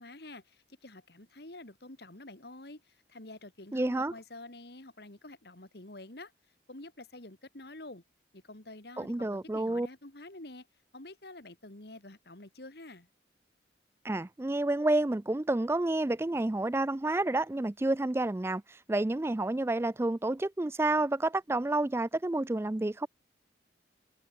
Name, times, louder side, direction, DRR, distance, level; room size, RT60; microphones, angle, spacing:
voice 1, 0.0-6.3 6.7-8.0 8.3-10.7 10.9-13.1, left 2 dB, 55° left, 2.3 m, -48 dB
voice 2, 3.7-4.1 9.0-9.9 14.0-23.1, right 2 dB, 15° right, 0.3 m, -29 dB
head